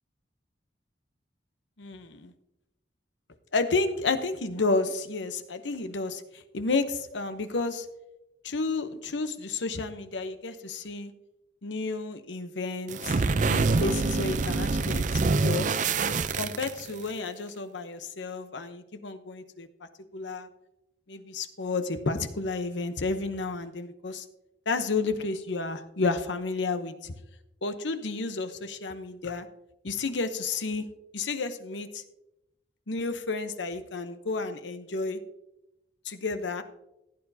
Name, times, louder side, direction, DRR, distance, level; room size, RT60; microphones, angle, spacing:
voice 1, 1.8-2.3 3.5-7.9 8.4-11.1 11.6-15.0 15.4-15.7 16.4-19.7 20.1-20.5 21.1-24.2 24.7-27.1 27.6-29.5 29.8-30.9 31.1-32.0 32.9-35.2 36.0-36.6, left 3 dB, 75° left, 9 dB, 0.9 m, -31 dB
sound 1, 12.9-17.1, right 3 dB, 45° right, 0.5 m, -26 dB
15.5 x 9.3 x 2.8 m, 0.92 s
head